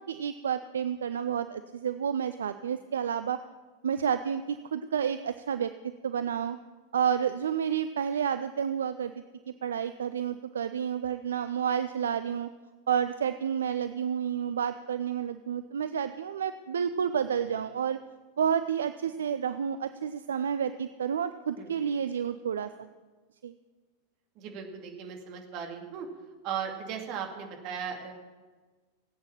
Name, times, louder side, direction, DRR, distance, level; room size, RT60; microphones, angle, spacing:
voice 1, 0.0-3.4 3.8-5.7 6.0-6.6 6.9-9.1 9.6-12.5 12.9-18.0 18.4-22.7 23.4-23.5, right 8 dB, 65° right, 11 dB, 0.5 m, -30 dB
voice 2, 24.4-26.1 26.4-28.1, right 7 dB, 40° right, 3 dB, 2.4 m, -37 dB
18.0 x 8.8 x 7.4 m, 1.3 s
figure-of-eight pair, 90°, 0 cm